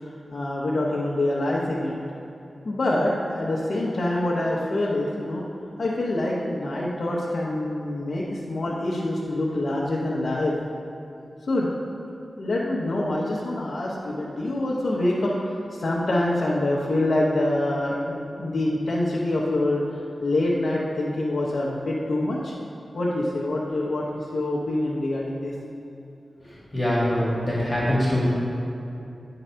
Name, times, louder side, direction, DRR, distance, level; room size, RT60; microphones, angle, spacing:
voice 1, 0.0-1.9 2.6-5.4 5.8-10.5 11.5-11.7 12.4-19.8 20.2-22.5 22.9-25.5, left 1 dB, 55° left, -5 dB, 0.9 m, -25 dB
voice 2, 26.7-28.3, left 1 dB, 15° left, -8 dB, 1.7 m, -23 dB
10.0 x 3.9 x 5.6 m, 2.7 s
wide cardioid pair, 140°, 0 cm